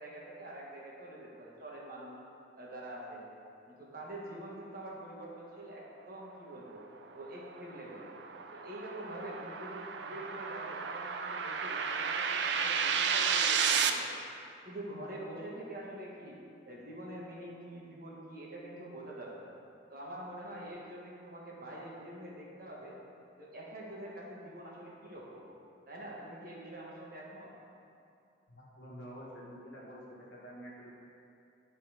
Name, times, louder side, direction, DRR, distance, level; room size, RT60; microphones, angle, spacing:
voice 1, 0.0-2.2 2.5-3.2 3.7-6.8 7.1-8.2 8.5-14.2 14.6-16.4 16.6-19.5 19.9-23.0 23.4-25.5 25.9-27.5, right 1 dB, 50° right, -4 dB, 1.5 m, -45 dB
sound 1, 7.0-13.9, right 6 dB, 75° right, 0.4 m, -32 dB
voice 2, 28.5-30.9, equal, 70° left, -6 dB, 1.5 m, -48 dB
9.8 x 4.3 x 5.0 m, 2.5 s
head